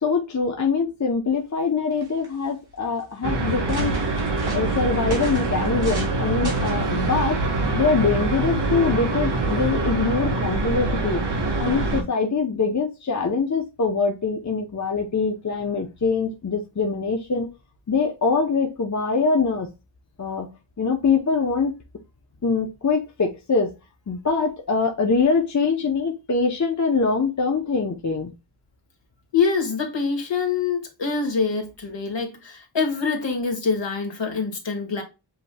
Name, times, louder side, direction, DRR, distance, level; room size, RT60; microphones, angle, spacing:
voice 1, 0.0-4.0 4.4-7.4 7.7-11.2 11.6-17.5 17.9-19.7 20.2-20.5 20.8-21.7 22.4-23.7 24.1-28.3, left 4 dB, 35° left, 0.8 m, -23 dB
sound 1, 1.6-1.7 1.9-2.5 3.1-3.2 3.5-6.2 6.4-6.9 7.6-7.9, right 2 dB, 80° right, 3.2 m, -38 dB
sound 2, 3.2-12.0, right 3 dB, 60° right, 1.5 m, -24 dB
voice 2, 29.3-35.0, left 5 dB, 65° left, 1.9 m, -25 dB
7.8 x 3.0 x 2.2 m
wide cardioid pair, 95°, 47 cm